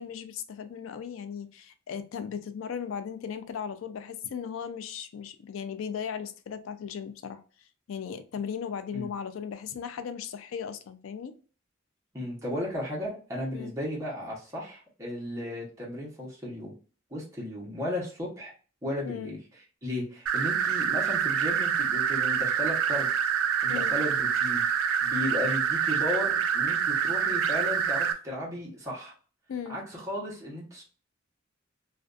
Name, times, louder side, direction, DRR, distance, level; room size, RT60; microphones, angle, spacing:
voice 1, 0.0-7.4 7.9-11.3 13.5-13.7 19.1-19.3 23.7-24.0 29.5-29.8, left 7 dB, 90° left, 0.4 m, -37 dB
voice 2, 12.1-16.7 17.1-18.5 18.8-19.4 19.8-23.1 23.6-24.6 25.0-29.1 29.7-30.8, left 1 dB, 15° right, 0.8 m, -35 dB
sound 1, 20.3-28.1, right 7 dB, 85° right, 0.3 m, -26 dB
2.5 x 2.2 x 2.4 m
head